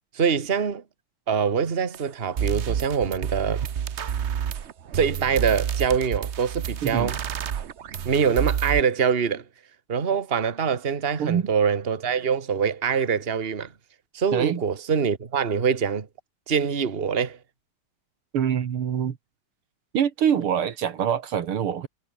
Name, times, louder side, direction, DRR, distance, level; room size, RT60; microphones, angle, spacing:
voice 1, 0.1-0.8 1.3-3.7 4.9-7.2 8.1-9.4 9.9-13.7 14.1-16.1 16.5-17.4, right 6 dB, 30° right, 1.8 m, -24 dB
sound 1, 1.9-2.0 2.4-8.8, right 8 dB, 55° right, 0.7 m, -29 dB
voice 2, 14.3-14.6 18.3-19.2 19.9-21.9, right 8 dB, 85° right, 2.6 m, -24 dB
omnidirectional pair, 2.3 m